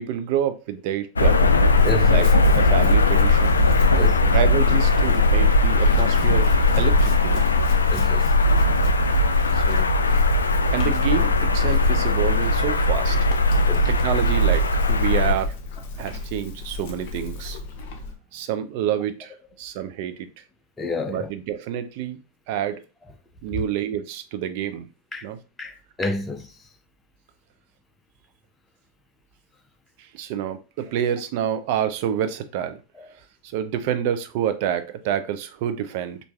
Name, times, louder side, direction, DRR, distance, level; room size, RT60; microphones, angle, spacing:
voice 1, 0.0-1.4 2.1-3.6 4.3-7.5 9.5-9.9 10.7-13.2 13.7-15.5 16.0-17.6 18.3-20.3 21.1-22.2 22.5-22.8 23.4-24.9 25.2-25.4 30.0-32.8 33.5-36.2, right 9 dB, 45° right, 0.5 m, -28 dB
sound 1, 1.2-15.3, left 2 dB, 75° left, 0.3 m, -18 dB
Chewing mastication / Livestock farm animals working animals, 1.6-18.2, left 3 dB, 50° left, 0.7 m, -34 dB
voice 2, 1.8-2.2 4.0-4.3 7.9-8.2 13.7-13.9 20.8-21.3 25.1-25.3 25.6-26.4, left 2 dB, 15° left, 0.6 m, -29 dB
4.4 x 2.6 x 2.3 m
figure-of-eight pair, 90°, 0 cm